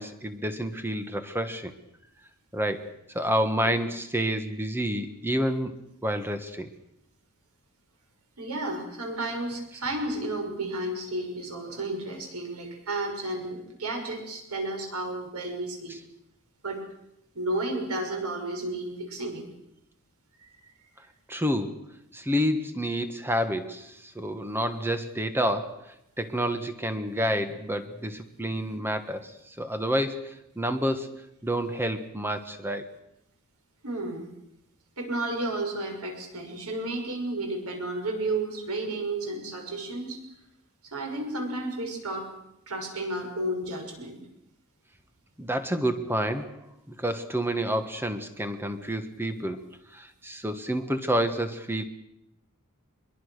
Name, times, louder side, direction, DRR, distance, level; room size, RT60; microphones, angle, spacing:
voice 1, 0.0-1.7 2.5-2.9 3.1-5.7 6.0-6.7 21.3-21.8 22.1-29.3 29.6-31.1 31.4-32.9 45.4-46.6 46.9-49.6 49.9-51.8, equal, 10° right, 9 dB, 1.3 m, -29 dB
voice 2, 8.4-16.0 16.6-16.8 17.3-19.4 33.8-34.3 35.0-40.2 40.9-42.3 42.7-44.2, right 2 dB, 85° right, 3 dB, 6.4 m, -32 dB
24.0 x 22.5 x 6.6 m, 0.81 s
head